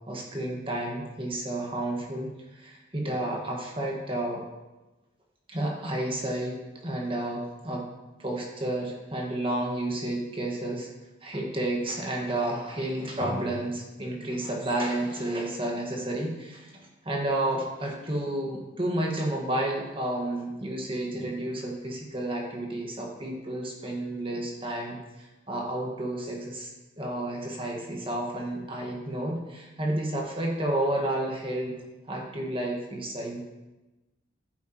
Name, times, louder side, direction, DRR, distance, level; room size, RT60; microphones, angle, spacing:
voice 1, 0.1-4.4 5.5-7.9 8.2-10.9 11.2-26.7 27.0-31.8 32.1-33.4, right 1 dB, 25° right, -1 dB, 1.5 m, -31 dB
10.5 x 8.8 x 3.0 m, 1.1 s
head